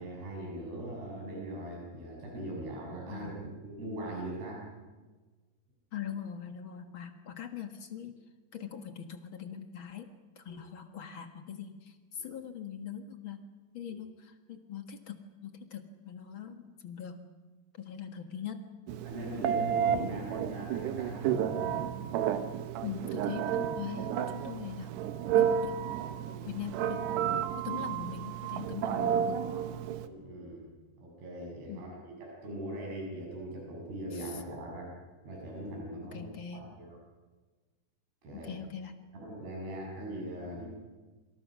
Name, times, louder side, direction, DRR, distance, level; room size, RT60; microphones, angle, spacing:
voice 1, 0.0-3.4 3.6-4.7 19.0-21.7 22.0-22.5 26.3-26.5 30.0-30.7 31.0-34.9 35.2-36.2 36.5-37.0 38.2-38.5 39.1-40.7, right 1 dB, 75° right, -2 dB, 8.8 m, -40 dB
voice 2, 3.1-3.6 5.9-8.2 8.5-13.5 13.7-17.3 17.8-18.6 22.8-25.0 25.3-25.8 26.4-27.1 27.6-29.5 31.7-31.9 34.1-34.4 36.1-36.7 38.4-39.0, left 8 dB, 65° left, 7 dB, 1.2 m, -42 dB
Telephone, 18.9-30.1, right 9 dB, 90° right, 3.3 m, -31 dB
28.0 x 26.0 x 6.2 m, 1.3 s
omnidirectional pair, 4.7 m